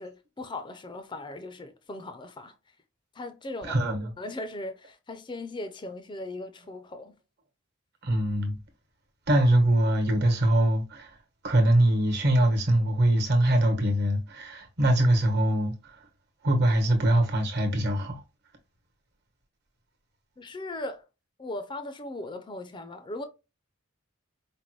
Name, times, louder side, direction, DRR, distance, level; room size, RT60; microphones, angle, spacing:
voice 1, 0.0-2.5 3.1-3.8 4.2-7.1 20.4-21.1 21.4-23.2, left 2 dB, 25° left, 0.4 m, -38 dB
voice 2, 3.6-4.1 8.0-8.6 9.3-11.1 11.4-16.0 16.4-18.2, right 1 dB, 55° right, 1.2 m, -23 dB
5.0 x 2.1 x 3.1 m
head